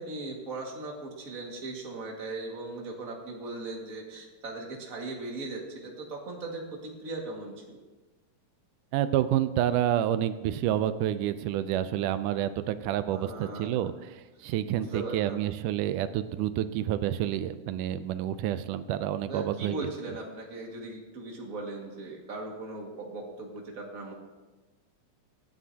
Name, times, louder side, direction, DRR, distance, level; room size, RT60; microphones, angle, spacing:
voice 1, 0.0-7.8 13.1-13.8 14.7-15.4 19.3-24.1, right 2 dB, 30° right, -1 dB, 2.0 m, -38 dB
voice 2, 8.9-19.9, right 11 dB, 90° right, 12 dB, 2.2 m, -29 dB
25.0 x 9.6 x 2.9 m, 1.2 s
omnidirectional pair, 3.6 m